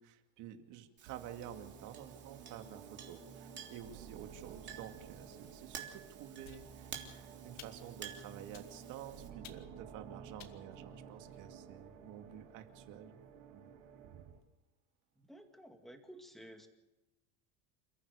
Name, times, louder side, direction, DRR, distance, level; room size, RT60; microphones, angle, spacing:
voice 1, 0.0-13.2 13.5-13.7 14.0-14.2, right 10 dB, 50° right, 6 dB, 2.4 m, -50 dB
Chink clink, 1.0-9.3, right 8 dB, 30° right, 3.3 m, -52 dB
sound 1, 1.1-14.4, right 7 dB, 80° right, 5.6 m, -53 dB
sound 2, 6.4-7.1 7.6-8.0 8.5-9.0 9.4-9.9 10.4-11.5, left 10 dB, 45° left, 2.3 m, -57 dB
voice 2, 15.2-16.7, equal, ahead, 5 dB, 2.2 m, -53 dB
28.5 x 15.0 x 6.8 m, 1.0 s
cardioid pair, 160°, 38 cm